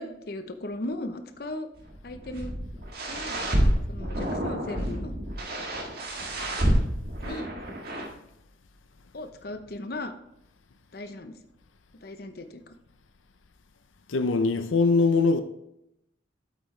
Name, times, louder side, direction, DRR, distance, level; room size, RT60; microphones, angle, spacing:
voice 1, 0.0-1.7 2.0-2.5 3.1-3.4 3.9-5.1 7.2-7.5 9.1-10.1 10.9-11.4 12.0-12.7, left 1 dB, 50° left, 0.7 m, -37 dB
sound 1, 1.8-8.1, right 1 dB, 50° right, 1.6 m, -28 dB
voice 2, 14.1-15.4, left 4 dB, 90° left, 0.6 m, -22 dB
8.3 x 8.0 x 3.2 m
head